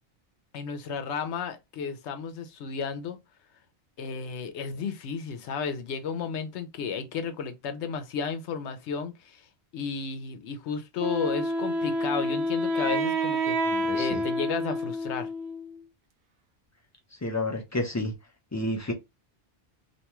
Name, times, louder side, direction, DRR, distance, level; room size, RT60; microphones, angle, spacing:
voice 1, 0.5-3.2 4.0-9.4 9.7-13.6 13.9-15.3, left 6 dB, 80° left, 0.9 m, -33 dB
Wind instrument woodwind instrument, 11.0-15.8, equal, 75° right, 0.9 m, -28 dB
voice 2, 13.7-14.2 17.2-18.1 18.5-18.9, left 1 dB, 25° left, 0.3 m, -30 dB
2.6 x 2.3 x 2.9 m
omnidirectional pair, 1.1 m